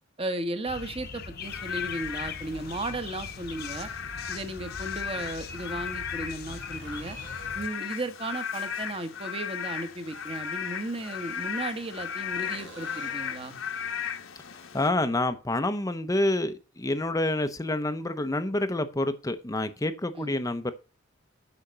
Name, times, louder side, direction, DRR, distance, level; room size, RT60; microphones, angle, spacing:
voice 1, 0.2-3.9 4.3-7.2 7.5-13.6 20.2-20.4, right 2 dB, 25° right, 1.2 m, -35 dB
sound 1, 0.7-7.7, left 4 dB, 50° left, 1.0 m, -41 dB
Frog / Rain, 1.4-14.9, left 7 dB, 70° left, 1.2 m, -36 dB
sound 2, 1.4-1.5 3.5-3.6 4.9-5.7 6.7-7.9 11.0-12.0 12.4-13.4 17.1-17.2, right 4 dB, 60° right, 1.4 m, -51 dB
voice 2, 14.7-20.7, left 1 dB, 15° left, 0.7 m, -28 dB
8.7 x 5.8 x 6.6 m
head